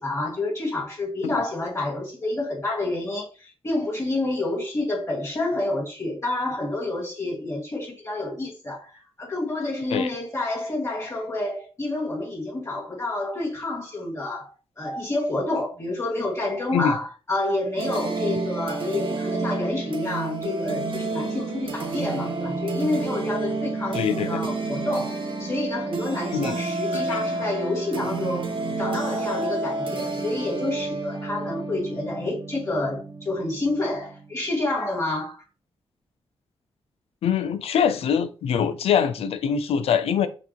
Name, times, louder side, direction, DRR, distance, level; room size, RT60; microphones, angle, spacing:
voice 1, 0.0-8.9 9.2-14.5 14.8-28.5 28.8-35.4, left 2 dB, 30° left, 2.3 m, -28 dB
sound 1, 17.8-34.4, right 3 dB, 60° right, 0.9 m, -30 dB
voice 2, 23.9-24.4 26.3-26.6 26.9-27.4 37.2-40.3, left 8 dB, 85° left, 0.5 m, -24 dB
5.8 x 2.6 x 3.0 m
cardioid pair, 75°, 10 cm